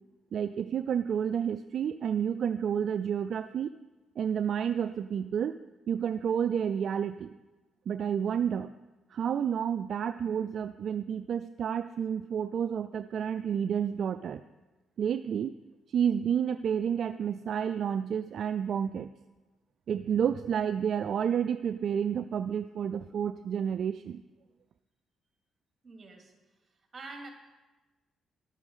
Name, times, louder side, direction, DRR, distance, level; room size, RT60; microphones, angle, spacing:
voice 1, 0.3-3.7 4.2-5.5 5.9-7.3 7.9-8.7 9.1-14.4 15.0-15.5 15.9-19.1 19.9-24.2, right 8 dB, 60° right, 11 dB, 0.3 m, -30 dB
voice 2, 25.8-26.3 26.9-27.3, right 3 dB, 35° right, 2 dB, 2.5 m, -45 dB
12.0 x 8.2 x 5.5 m, 1.2 s
cardioid pair, 90°, 0 cm